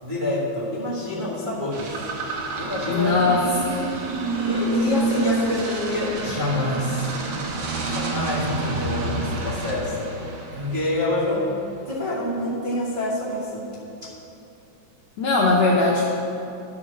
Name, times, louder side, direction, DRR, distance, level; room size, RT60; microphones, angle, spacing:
voice 1, 0.0-2.0 2.6-3.1 4.5-7.1 7.8-11.5 11.8-13.7 14.0-14.1, left 1 dB, 45° right, -10 dB, 0.6 m, -27 dB
sound 1, 1.7-11.2, right 2 dB, 65° right, 2.2 m, -28 dB
voice 2, 2.8-3.4 15.2-16.1, left 3 dB, 80° left, -3 dB, 1.4 m, -19 dB
12.0 x 4.8 x 6.5 m, 2.8 s
omnidirectional pair, 4.0 m